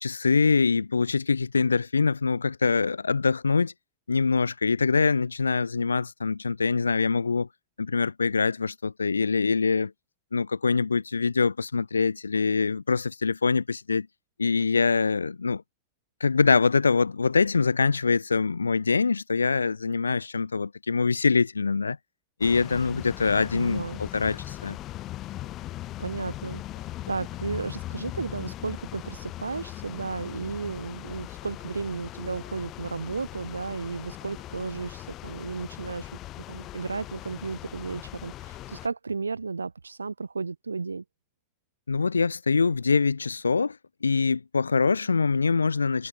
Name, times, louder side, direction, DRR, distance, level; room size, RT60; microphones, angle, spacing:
voice 1, 0.0-3.7 4.1-7.5 7.8-9.9 10.3-14.1 14.4-15.6 16.2-22.0 22.4-24.8 41.9-46.1, left 4 dB, 75° left, 1.0 m, -24 dB
sound 1, 22.4-38.9, left 15 dB, 35° left, 5.6 m, -39 dB
voice 2, 23.5-24.0 26.0-26.6 27.1-36.2 36.5-41.0, right 4 dB, 75° right, 2.4 m, -34 dB
figure-of-eight pair, 90°, 0 cm